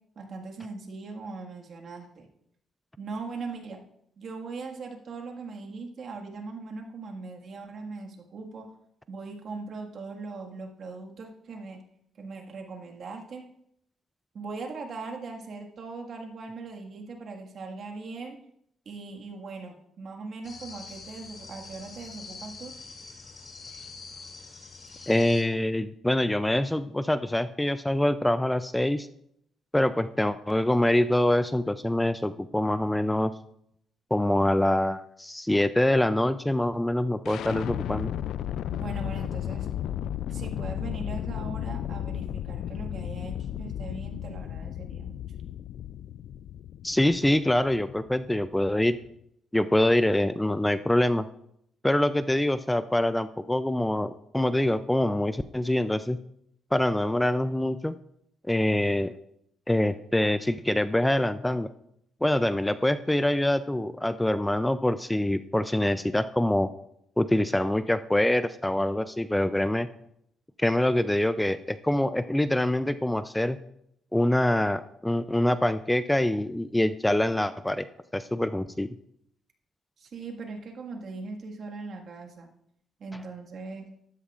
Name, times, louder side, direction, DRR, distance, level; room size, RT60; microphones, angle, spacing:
voice 1, 0.2-2.3 3.0-3.8 4.2-8.7 9.1-11.8 12.2-13.5 14.3-18.4 18.9-22.8 38.7-39.7 40.3-45.2 80.0-82.5 83.0-83.9, right 4 dB, 55° right, 2 dB, 1.8 m, -40 dB
sound 1, 20.4-25.4, left 4 dB, 50° left, 2.6 m, -44 dB
voice 2, 25.1-29.1 29.7-33.3 34.1-38.1 46.8-49.0 49.5-51.3 51.8-56.2 56.7-57.9 58.4-59.1 59.7-61.7 62.2-66.7 67.2-69.9 70.6-73.6 74.1-77.8 78.1-78.9, left 1 dB, 10° left, 12 dB, 0.4 m, -25 dB
sound 2, 37.2-49.1, left 10 dB, 75° left, 0.3 m, -34 dB
12.5 x 12.0 x 2.5 m, 0.73 s
cardioid pair, 90°, 0 cm